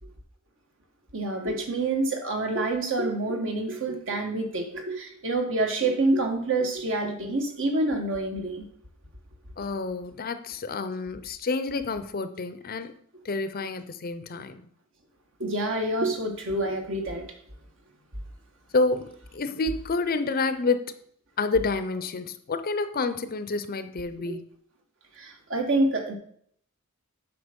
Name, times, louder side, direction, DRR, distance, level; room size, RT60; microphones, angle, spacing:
voice 1, 1.1-8.6 15.4-17.2 24.3-24.4 25.1-26.2, right 2 dB, 60° right, 3 dB, 1.7 m, -27 dB
voice 2, 9.6-12.9 13.2-14.6 18.7-20.9 21.4-24.5, left 3 dB, 45° left, 11 dB, 0.6 m, -29 dB
8.0 x 5.6 x 5.3 m, 0.63 s
head